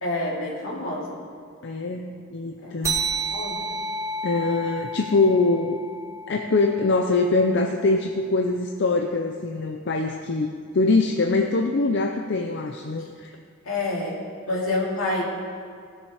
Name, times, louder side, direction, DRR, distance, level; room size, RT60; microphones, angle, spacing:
voice 1, 0.0-1.2 2.6-2.7 3.1-3.7 13.6-14.2 14.5-15.2, left 2 dB, 80° left, -3 dB, 2.6 m, -28 dB
voice 2, 1.6-2.9 4.2-5.8 6.3-10.5 10.7-13.3, left 3 dB, 55° left, 3 dB, 0.6 m, -23 dB
sound 1, 2.8-7.8, right 3 dB, 15° right, 1.0 m, -31 dB
18.0 x 6.5 x 4.9 m, 2.3 s
head